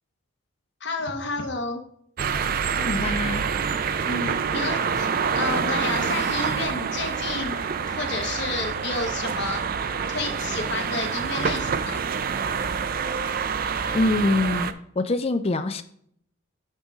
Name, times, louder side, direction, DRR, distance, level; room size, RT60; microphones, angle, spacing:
voice 1, 0.8-1.8 4.1-9.6 10.1-12.1, left 3 dB, 55° left, 5 dB, 1.0 m, -31 dB
sound 1, 2.2-14.7, right 6 dB, 40° right, 0.4 m, -27 dB
voice 2, 2.8-3.4 13.9-15.8, left 2 dB, 30° left, 11 dB, 0.4 m, -24 dB
8.1 x 5.2 x 3.6 m, 0.67 s
head